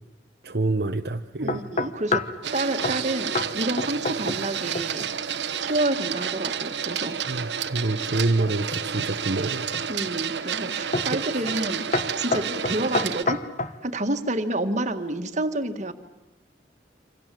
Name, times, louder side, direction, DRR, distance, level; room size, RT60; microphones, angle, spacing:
voice 1, 0.4-1.7 7.2-9.6 11.1-11.2, right 2 dB, 65° right, 5 dB, 0.9 m, -26 dB
voice 2, 1.4-2.2 2.5-5.1 5.6-7.4 9.9-11.8 12.2-13.4 13.8-15.9, right 1 dB, 45° right, 7 dB, 1.9 m, -28 dB
sound 1, 1.5-2.4 2.8-3.0 3.3-3.5 3.8-4.5 4.7-5.1 8.5-9.1 9.7-10.1 10.9-11.2 11.5-11.7 11.9-13.8, left 2 dB, 45° left, 1.2 m, -28 dB
Printer, 2.4-13.2, right 7 dB, 85° right, 1.2 m, -30 dB
28.5 x 26.0 x 7.7 m, 0.97 s
head